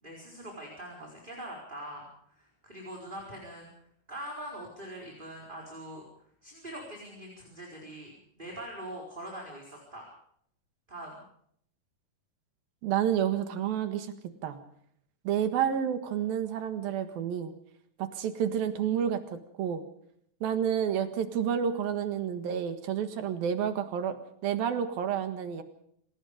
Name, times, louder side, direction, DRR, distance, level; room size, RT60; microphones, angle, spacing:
voice 1, 0.0-2.0 2.4-3.7 4.1-6.0 6.4-8.1 8.4-10.0 10.9-11.2, right 1 dB, 15° right, -1 dB, 4.5 m, -42 dB
voice 2, 12.8-14.1 14.4-14.6 15.3-17.5 18.0-19.2 19.6-19.8 20.4-25.6, right 8 dB, 75° right, 9 dB, 3.4 m, -29 dB
27.0 x 19.0 x 5.1 m, 0.68 s
omnidirectional pair, 4.3 m